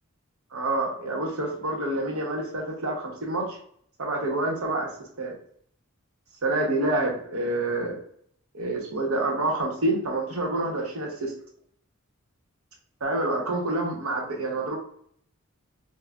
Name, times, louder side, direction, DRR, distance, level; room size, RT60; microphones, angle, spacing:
voice 1, 0.5-3.6 4.0-4.9 5.2-5.3 6.4-8.0 8.5-11.3 13.0-14.8, right 2 dB, 85° right, -1 dB, 1.1 m, -27 dB
5.8 x 2.3 x 2.4 m, 0.63 s
head